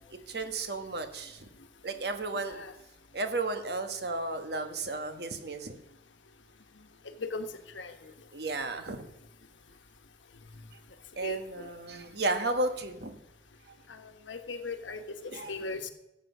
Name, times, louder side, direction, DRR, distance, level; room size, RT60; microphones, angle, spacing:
voice 1, 0.3-1.4 1.8-2.6 3.1-5.8 8.3-9.0 11.2-13.2 15.3-15.6, right 2 dB, 60° right, 7 dB, 1.3 m, -33 dB
voice 2, 2.3-2.7 7.2-7.5 7.7-7.9 11.2-11.7 14.3-15.9, left 3 dB, 85° left, 7 dB, 1.2 m, -38 dB
14.5 x 7.7 x 6.1 m, 0.88 s
head